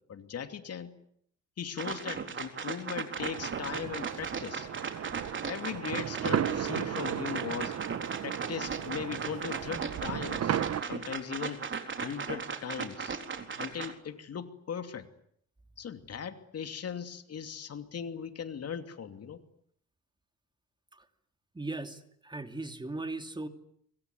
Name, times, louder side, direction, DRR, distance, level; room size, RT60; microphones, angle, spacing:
voice 1, 0.1-0.9 1.6-4.7 5.5-7.7 8.2-10.6 10.9-11.6 12.0-13.2 13.6-15.1 15.8-19.4, left 7 dB, 55° left, 8 dB, 2.8 m, -38 dB
sound 1, 1.8-13.9, right 5 dB, 40° right, 3.9 m, -37 dB
sound 2, 3.2-10.8, right 10 dB, 55° right, 1.4 m, -35 dB
voice 2, 21.5-23.5, right 2 dB, 15° right, 7 dB, 2.8 m, -38 dB
25.0 x 24.5 x 9.6 m, 0.69 s
cardioid pair, 90°, 30 cm